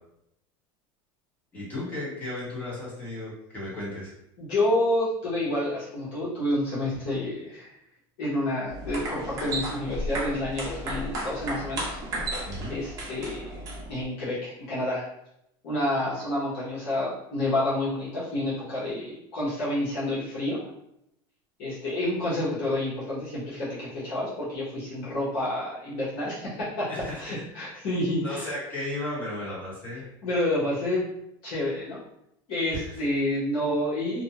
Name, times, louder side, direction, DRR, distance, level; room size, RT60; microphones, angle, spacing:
voice 1, 1.5-4.1 12.5-12.8 26.9-27.4 28.2-30.1 32.8-32.9, left 1 dB, 15° left, -7 dB, 1.1 m, -35 dB
voice 2, 4.4-7.7 8.2-12.0 12.3-13.6 13.9-15.0 15.6-20.7 21.6-26.9 27.2-28.5 30.2-31.0 31.4-32.0 32.5-34.2, left 1 dB, 60° left, -9 dB, 1.0 m, -29 dB
sound 1, 8.7-14.0, right 1 dB, 30° right, 0.7 m, -34 dB
2.6 x 2.2 x 2.8 m, 0.79 s
supercardioid pair, 155°, 12 cm